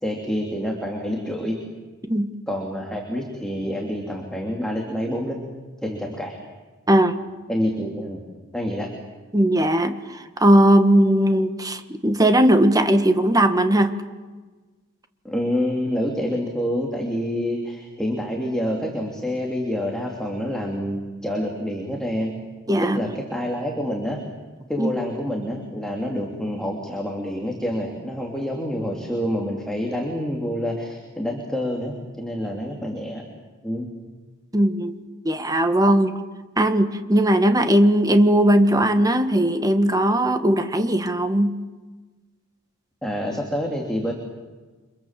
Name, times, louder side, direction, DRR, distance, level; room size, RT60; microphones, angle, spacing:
voice 1, 0.0-1.6 2.5-5.4 5.8-6.3 7.5-8.2 8.5-8.9 15.2-22.3 22.8-24.2 24.7-33.2 33.6-33.9 43.0-44.1, equal, 5° left, 0 dB, 3.1 m, -27 dB
voice 2, 9.3-13.9 22.7-23.0 24.8-24.9 34.5-35.0 35.2-36.1 36.6-41.5, right 1 dB, 15° right, 7 dB, 1.7 m, -18 dB
30.0 x 26.0 x 7.6 m, 1.3 s
head